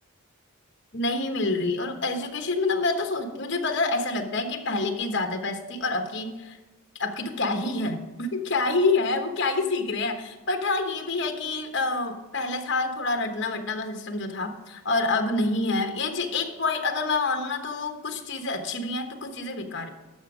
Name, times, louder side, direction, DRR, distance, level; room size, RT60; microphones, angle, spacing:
voice 1, 0.9-6.6 7.0-19.9, left 3 dB, 55° left, 5 dB, 1.1 m, -27 dB
12.0 x 6.1 x 5.0 m, 1.2 s
head